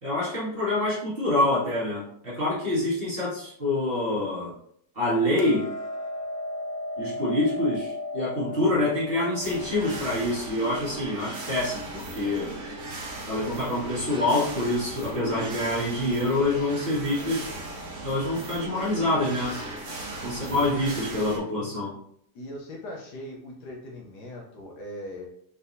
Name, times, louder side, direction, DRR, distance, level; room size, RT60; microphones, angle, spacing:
voice 1, 0.0-4.5 4.9-5.7 7.0-12.5 13.3-17.5 18.0-19.6 20.2-21.9, left 1 dB, 30° right, -7 dB, 1.9 m, -26 dB
Hammer, 5.4-11.6, left 2 dB, 90° left, 1.3 m, -36 dB
voice 2, 8.5-8.9 18.5-18.8 19.3-19.9 20.5-21.5 22.3-25.3, left 1 dB, 70° left, -1 dB, 1.3 m, -41 dB
sound 1, 9.4-21.4, right 2 dB, 55° right, 1.4 m, -37 dB
4.2 x 3.9 x 2.7 m, 0.68 s
omnidirectional pair, 2.0 m